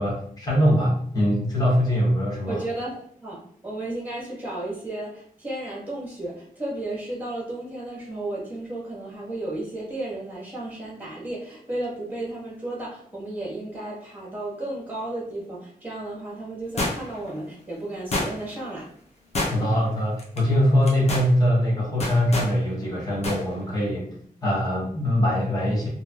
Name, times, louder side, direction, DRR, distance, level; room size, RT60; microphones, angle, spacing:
voice 1, 0.0-2.6 19.5-24.1 24.4-25.9, equal, 25° left, -5 dB, 1.0 m, -22 dB
voice 2, 2.5-18.9, right 2 dB, 10° right, -5 dB, 1.1 m, -33 dB
sound 1, 16.8-17.3 18.1-18.6 19.3-19.9 20.2-20.4 20.8-21.3 22.0-22.5 23.2-23.4 23.7-23.8, left 2 dB, 45° left, 0.6 m, -28 dB
3.1 x 2.6 x 2.2 m, 0.63 s
wide cardioid pair, 170°, 15 cm